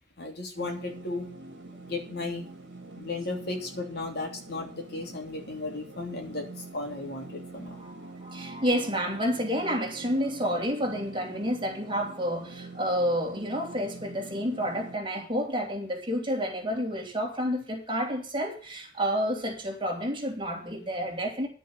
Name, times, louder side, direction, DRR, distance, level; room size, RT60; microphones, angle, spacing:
voice 1, 0.2-1.3 1.9-2.4 3.0-7.8, left 3 dB, 60° left, 3.1 m, -35 dB
sound 1, 0.6-15.0, right 2 dB, 80° right, 1.6 m, -45 dB
voice 2, 7.8-21.5, equal, 25° right, 3.1 m, -30 dB
11.0 x 6.7 x 7.9 m
head